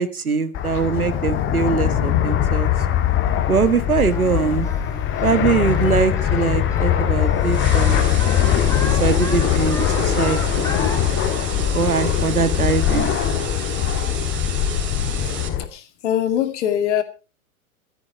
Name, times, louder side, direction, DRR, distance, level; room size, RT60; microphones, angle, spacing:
voice 1, 0.0-2.7 3.5-4.7 5.2-8.1 8.9-10.7 11.5-13.2, right 5 dB, 80° right, 13 dB, 1.7 m, -22 dB
Fixed-wing aircraft airplane, 0.5-15.7, left 10 dB, 25° left, 2.0 m, -21 dB
Singing, 4.1-11.0, left 3 dB, 5° left, 1.7 m, -35 dB
sound 1, 7.4-15.5, right 7 dB, 25° right, 4.2 m, -33 dB
voice 2, 15.7-17.0, left 10 dB, 50° left, 9 dB, 2.5 m, -22 dB
14.5 x 13.0 x 4.9 m, 0.34 s
figure-of-eight pair, 100°, 43 cm